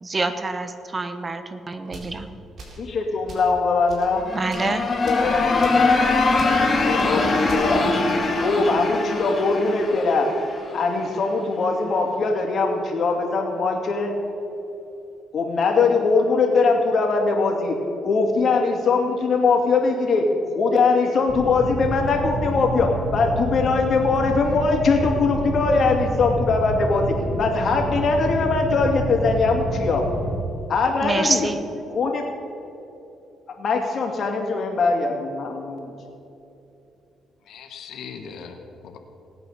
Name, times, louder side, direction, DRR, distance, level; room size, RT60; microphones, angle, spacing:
voice 1, 0.0-2.3 4.3-4.8 31.0-31.6, right 3 dB, 30° right, 9 dB, 1.0 m, -26 dB
sound 1, 1.9-2.1 2.6-2.9 3.3-3.5 3.9-4.1 4.4-4.7 5.1-5.3 5.6-5.8 6.4-6.6 7.0-7.1 7.5-7.7, right 3 dB, 60° right, 3.9 m, -40 dB
voice 2, 2.8-4.3 5.0-6.1 6.8-7.9 8.4-10.3 10.7-14.1 15.3-17.8 18.0-30.0 30.7-31.5 31.9-32.3 33.6-35.9, left 4 dB, 55° left, 2 dB, 2.6 m, -21 dB
sound 2, 4.2-11.0, left 3 dB, 30° left, 2.7 m, -22 dB
sound 3, 21.3-30.4, right 1 dB, 10° left, 3.2 m, -28 dB
voice 3, 37.4-39.0, left 6 dB, 75° left, 5 dB, 1.1 m, -39 dB
18.5 x 8.8 x 6.8 m, 2.9 s
cardioid pair, 90°, 0 cm